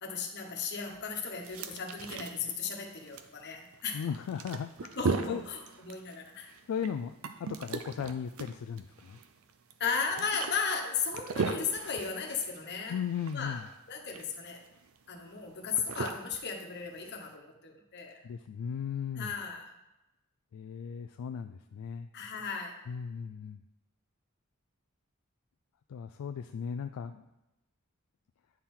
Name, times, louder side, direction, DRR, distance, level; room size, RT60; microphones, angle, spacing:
voice 1, 0.0-4.1 4.9-6.5 9.8-13.0 13.3-13.6 13.9-14.6 15.1-18.2 19.1-19.7 22.1-22.8, left 5 dB, 50° left, 1 dB, 1.1 m, -35 dB
sound 1, 0.8-17.3, right 4 dB, 65° right, 0.5 m, -39 dB
voice 2, 3.9-5.0 5.3-5.4 6.7-9.2 12.9-13.6 18.2-19.3 20.5-22.1 22.9-23.6 25.9-27.2, left 7 dB, 70° left, 8 dB, 0.3 m, -37 dB
9.7 x 4.4 x 3.8 m, 0.93 s
head